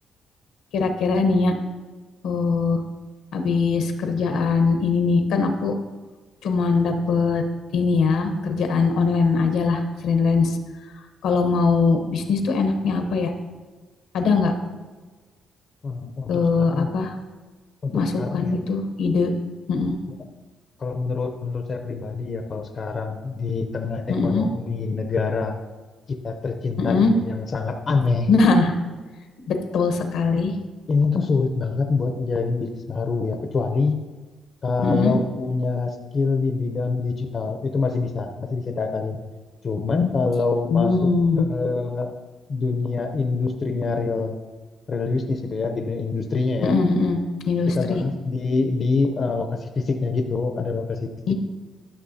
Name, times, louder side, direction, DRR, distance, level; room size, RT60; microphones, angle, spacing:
voice 1, 0.7-1.5 2.2-2.8 3.3-5.7 6.4-7.4 7.7-10.6 11.2-13.3 14.1-14.5 16.3-17.2 17.9-19.3 19.7-20.0 24.1-24.5 26.8-27.1 28.3-28.8 29.5-30.6 34.8-35.1 40.7-41.4 46.6-47.2 47.5-48.0 51.3-51.4, left 4 dB, 80° left, 5 dB, 0.9 m, -21 dB
voice 2, 15.8-16.9 17.8-18.6 20.8-25.5 26.2-28.3 30.9-34.0 34.6-39.2 39.6-41.1 41.4-42.1 42.5-44.4 44.9-46.8 47.8-51.0, left 4 dB, 45° left, 5 dB, 0.6 m, -25 dB
11.5 x 6.1 x 2.7 m, 1.3 s
cardioid pair, 90°, 0 cm